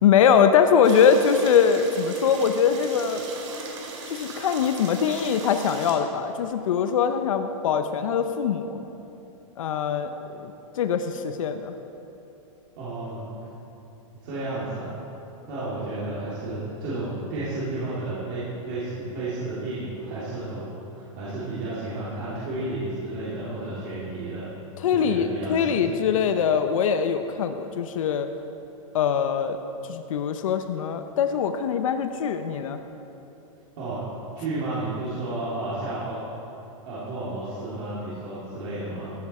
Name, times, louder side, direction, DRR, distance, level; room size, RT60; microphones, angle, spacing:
voice 1, 0.0-3.2 4.1-8.8 9.6-10.1 10.4-11.7 24.8-28.3 28.9-29.6 29.9-32.8, left 7 dB, 70° left, 8 dB, 0.7 m, -22 dB
sound 1, 0.8-5.9, right 3 dB, 60° right, 2.2 m, -38 dB
voice 2, 12.8-13.3 14.2-14.9 15.5-24.4 24.9-26.0 33.8-34.0 34.3-36.2 36.9-39.1, right 2 dB, 35° right, -10 dB, 2.5 m, -32 dB
14.5 x 8.4 x 4.3 m, 3.0 s
supercardioid pair, 170°, 17 cm